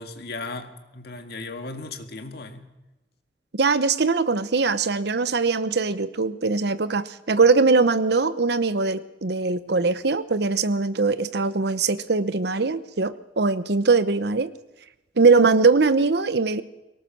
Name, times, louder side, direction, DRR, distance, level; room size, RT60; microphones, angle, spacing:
voice 1, 0.0-2.6, left 3 dB, 65° left, 6 dB, 2.0 m, -36 dB
voice 2, 3.5-14.5 15.2-16.6, right 4 dB, 65° right, 14 dB, 0.9 m, -21 dB
23.5 x 18.0 x 6.2 m, 1.0 s
head